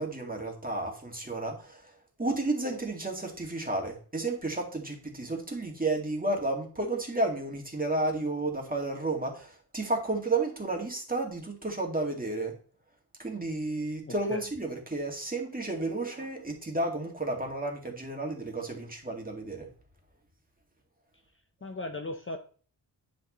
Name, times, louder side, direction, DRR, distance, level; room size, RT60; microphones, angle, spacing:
voice 1, 0.0-1.9 2.2-12.5 13.2-19.7, right 2 dB, 20° right, 1 dB, 2.1 m, -32 dB
voice 2, 14.1-14.4 21.6-22.4, left 2 dB, 30° left, 4 dB, 0.8 m, -37 dB
9.7 x 6.2 x 3.1 m, 0.42 s
wide cardioid pair, 115°, 41 cm